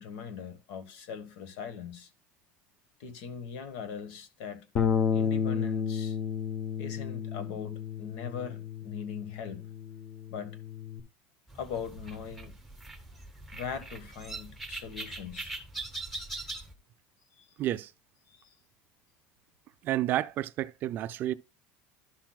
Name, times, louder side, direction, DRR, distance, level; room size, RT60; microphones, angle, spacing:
voice 1, 0.0-2.1 3.0-4.6 5.1-6.2 6.8-9.6 10.3-10.6 11.5-12.5 13.5-15.5 17.4-17.6 18.3-18.5, left 7 dB, 75° left, 1.2 m, -40 dB
Bass guitar, 4.8-11.0, left 7 dB, 40° left, 0.8 m, -32 dB
sound 1, 11.5-16.7, right 2 dB, ahead, 0.9 m, -42 dB
voice 2, 17.6-17.9 19.8-21.3, right 13 dB, 40° right, 0.3 m, -30 dB
11.5 x 5.9 x 2.2 m
cardioid pair, 160°, 5 cm